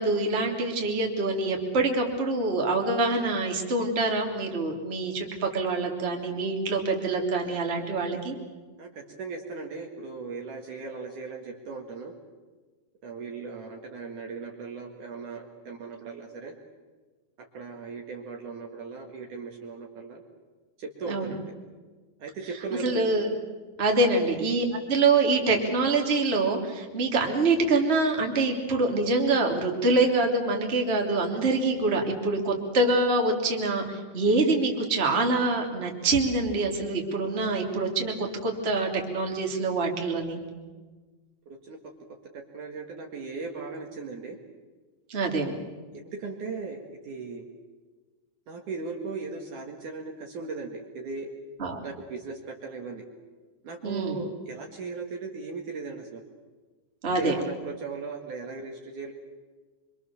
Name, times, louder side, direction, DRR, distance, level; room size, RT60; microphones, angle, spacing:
voice 1, 0.0-8.4 21.1-21.3 22.8-23.2 23.8-40.4 45.1-45.5 51.6-51.8 53.8-54.2 57.0-57.3, right 3 dB, 15° right, 1 dB, 2.6 m, -25 dB
voice 2, 8.8-12.1 13.0-16.5 17.5-20.2 20.8-21.4 22.2-23.1 41.5-41.8 42.3-44.4 45.9-46.8 47.0-47.5 48.5-51.3 51.8-53.0 53.6-56.2 57.1-59.1, right 4 dB, 55° right, 1 dB, 3.0 m, -37 dB
26.0 x 25.5 x 7.1 m, 1.3 s
omnidirectional pair, 4.8 m